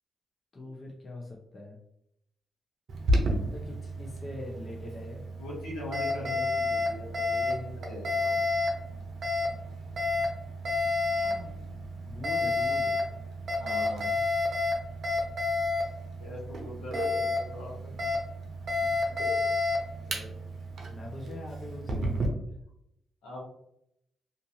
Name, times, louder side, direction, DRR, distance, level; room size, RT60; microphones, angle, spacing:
voice 1, 0.5-1.8 3.4-5.2 12.1-13.0 18.8-19.6 20.1-20.4 20.9-22.4, left 1 dB, 40° left, 0 dB, 0.7 m, -43 dB
Alarm, 2.9-22.3, left 2 dB, 65° right, 0.6 m, -30 dB
voice 2, 5.4-8.4 11.1-11.8 13.6-14.2 16.2-17.8 23.2-23.5, left 1 dB, 85° left, -4 dB, 1.1 m, -41 dB
2.6 x 2.5 x 2.7 m, 0.76 s
supercardioid pair, 50°, 0 cm